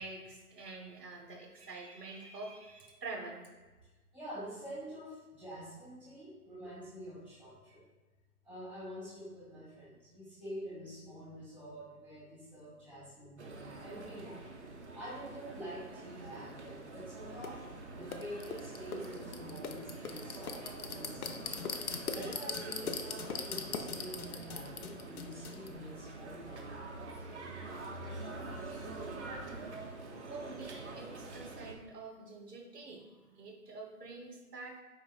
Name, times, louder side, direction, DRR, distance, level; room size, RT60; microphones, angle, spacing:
voice 1, 0.0-3.4 27.8-27.9 30.3-34.8, right 3 dB, 90° right, 2 dB, 1.1 m, -46 dB
voice 2, 4.1-7.8 8.4-14.5 14.9-17.6 17.9-21.4 22.1-26.7, equal, 5° left, -17 dB, 0.7 m, -47 dB
sound 1, 13.4-31.7, right 3 dB, 50° right, 0.6 m, -46 dB
sound 2, 17.4-17.5 18.1-25.7, left 5 dB, 70° left, 0.6 m, -41 dB
4.7 x 4.0 x 2.3 m, 1.3 s
hypercardioid pair, 165°, 47 cm